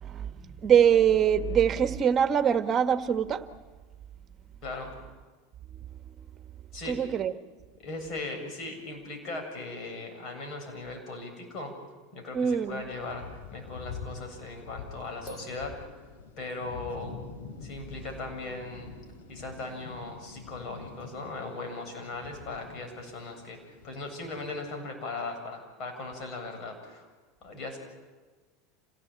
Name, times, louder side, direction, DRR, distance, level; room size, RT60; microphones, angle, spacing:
voice 1, 0.0-3.4 6.9-7.3 12.3-12.8, right 8 dB, 35° right, 9 dB, 1.7 m, -23 dB
voice 2, 4.6-4.9 6.7-7.0 7.8-11.7 12.1-13.2 13.5-15.8 16.4-17.2 17.6-18.9 19.3-23.6 23.8-27.1 27.4-27.8, left 3 dB, 50° left, 4 dB, 7.7 m, -38 dB
Thunder, 13.0-24.6, left 5 dB, 75° left, 4.7 m, -45 dB
sound 1, 15.0-16.7, right 1 dB, 25° left, 4.5 m, -50 dB
28.0 x 17.0 x 8.9 m, 1.4 s
hypercardioid pair, 90°, 0 cm